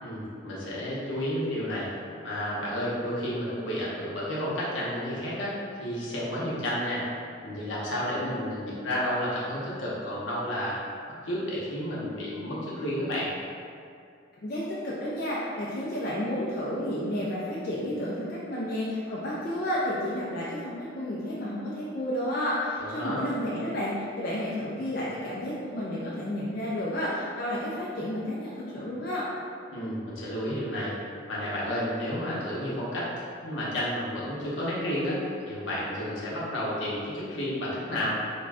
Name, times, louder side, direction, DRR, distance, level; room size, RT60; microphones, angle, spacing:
voice 1, 0.0-1.9 2.2-5.5 5.8-7.0 7.4-10.8 11.2-13.3 22.8-23.3 29.7-30.9 31.3-33.1 33.4-38.2, equal, 85° left, -7 dB, 0.7 m, -31 dB
voice 2, 14.4-29.3, left 1 dB, 50° left, -7 dB, 0.4 m, -31 dB
2.4 x 2.2 x 3.4 m, 2.3 s
head